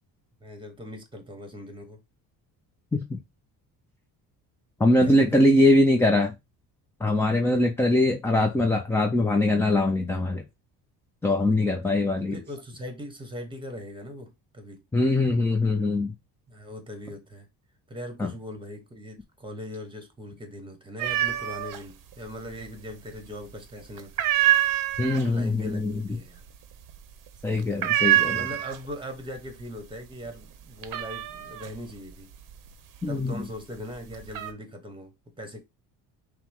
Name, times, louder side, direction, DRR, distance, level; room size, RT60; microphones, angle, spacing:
voice 1, 0.4-2.0 5.0-5.4 11.9-14.8 16.5-17.5 17.9-24.3 25.2-26.4 28.3-32.3 33.1-35.6, equal, 10° right, 1.1 m, -40 dB
voice 2, 4.8-6.3 7.0-10.4 11.2-12.3 14.9-16.1 18.2-18.3 25.0-26.0 27.4-28.4 33.0-33.4, left 1 dB, 5° left, 0.3 m, -22 dB
sound 1, 21.0-21.8 22.1-22.9 23.2-23.6 24.0-29.1 29.4-29.9 30.3-33.4 33.9-34.5, right 13 dB, 55° right, 0.7 m, -26 dB
5.7 x 2.1 x 3.5 m
cardioid pair, 120°, 40 cm